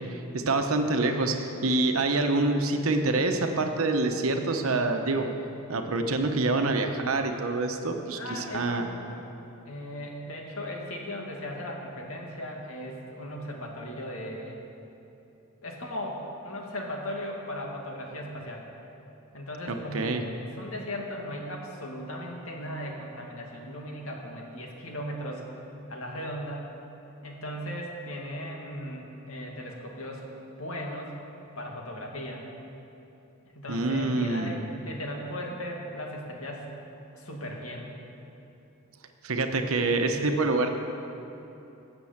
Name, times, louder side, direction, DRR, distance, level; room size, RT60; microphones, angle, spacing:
voice 1, 0.1-5.3 5.7-8.9 19.7-20.2 33.7-34.5 39.2-40.7, right 2 dB, 85° right, 5 dB, 1.0 m, -26 dB
voice 2, 8.2-9.3 9.6-14.6 15.6-18.7 19.3-20.1 20.4-25.4 25.9-26.7 27.2-30.3 30.6-31.1 31.6-32.5 33.5-36.7 37.1-38.0, equal, 80° left, 0 dB, 2.2 m, -37 dB
17.5 x 6.9 x 7.3 m, 2.9 s
head